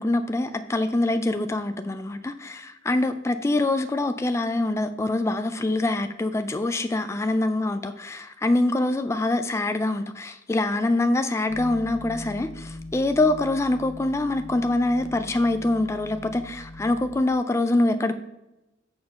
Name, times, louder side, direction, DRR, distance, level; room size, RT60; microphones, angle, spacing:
voice 1, 0.0-18.1, left 2 dB, 15° left, 0.3 m, -24 dB
sound 1, 11.5-17.2, left 1 dB, 75° left, 1.1 m, -41 dB
6.8 x 4.4 x 5.6 m
head